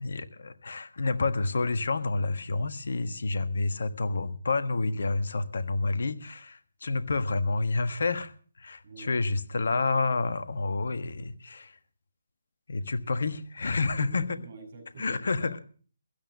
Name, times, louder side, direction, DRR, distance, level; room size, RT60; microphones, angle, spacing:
voice 1, 0.0-8.3 8.6-11.8 12.7-14.4 15.0-15.6, left 3 dB, 65° left, 11 dB, 1.4 m, -29 dB
voice 2, 8.8-9.2 13.9-15.6, right 3 dB, 50° right, 3 dB, 7.3 m, -47 dB
16.0 x 11.5 x 6.5 m, 0.43 s
figure-of-eight pair, 140°, 0 cm